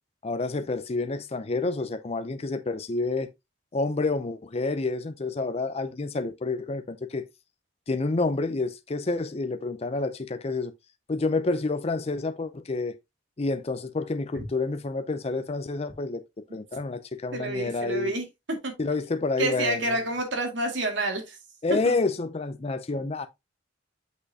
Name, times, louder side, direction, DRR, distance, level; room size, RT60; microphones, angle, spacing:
voice 1, 0.2-3.3 3.7-7.3 7.9-10.7 11.1-13.0 13.4-16.2 16.5-18.1 18.8-20.0 21.6-23.3, left 3 dB, 35° left, 0.5 m, -29 dB
voice 2, 17.3-18.8 19.4-21.4 21.9-22.0, right 2 dB, 70° right, 2.1 m, -29 dB
6.2 x 5.5 x 2.7 m
head